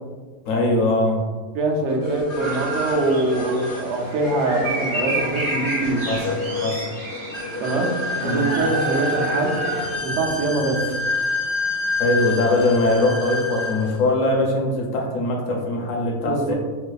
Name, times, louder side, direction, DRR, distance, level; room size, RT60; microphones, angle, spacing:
voice 1, 0.5-1.2 6.1-6.9 8.2-8.5 12.0-16.5, left 2 dB, 80° left, 0 dB, 1.0 m, -21 dB
voice 2, 1.5-6.0 7.6-7.9 8.2-9.6 10.0-10.8 16.2-16.5, right 2 dB, 70° right, 1 dB, 0.8 m, -23 dB
sound 1, 2.0-14.0, left 2 dB, 50° left, 0.5 m, -28 dB
sound 2, 2.4-9.9, right 2 dB, 35° right, 0.5 m, -29 dB
4.0 x 2.2 x 2.4 m, 1.4 s
omnidirectional pair, 1.3 m